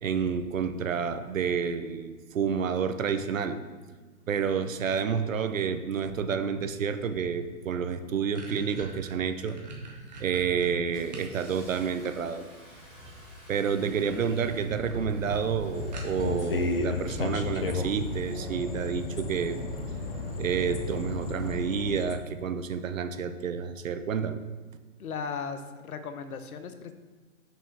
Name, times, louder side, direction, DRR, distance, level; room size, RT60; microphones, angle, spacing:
voice 1, 0.0-3.6 4.3-9.6 10.2-12.5 13.5-19.6 20.4-24.4, right 6 dB, 65° right, 10 dB, 0.7 m, -29 dB
Engine starting, 5.2-5.3 6.0-6.3 7.0-7.3 7.7-8.2 8.7-9.2 9.6-9.8 10.1-21.5, left 1 dB, ahead, 0.6 m, -41 dB
sound 1, 7.5-7.6 7.9-11.4 11.7-12.6 13.7-14.1 14.5-14.6 14.9-15.0 15.3-15.4 15.9-16.5, right 2 dB, 30° right, 0.9 m, -44 dB
sound 2, 15.7-22.2, left 3 dB, 40° left, 0.5 m, -34 dB
voice 2, 25.0-26.9, left 5 dB, 75° left, 9 dB, 0.9 m, -36 dB
6.1 x 5.5 x 4.6 m, 1.4 s
hypercardioid pair, 180°, 43 cm